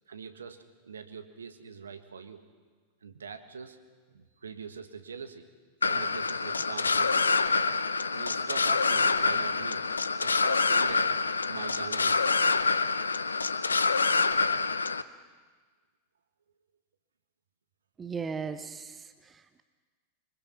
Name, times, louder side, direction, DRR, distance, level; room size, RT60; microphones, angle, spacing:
voice 1, 0.1-2.4 3.0-3.8 4.1-5.5 5.9-7.5 8.1-9.9 10.2-11.0 11.5-12.4, right 6 dB, 70° right, 8 dB, 1.5 m, -43 dB
sound 1, 5.8-15.0, left 4 dB, 75° left, 0.6 m, -26 dB
voice 2, 18.0-19.6, right 5 dB, 20° right, 10 dB, 1.1 m, -37 dB
26.0 x 24.0 x 5.8 m, 1.4 s
figure-of-eight pair, 90°, 0 cm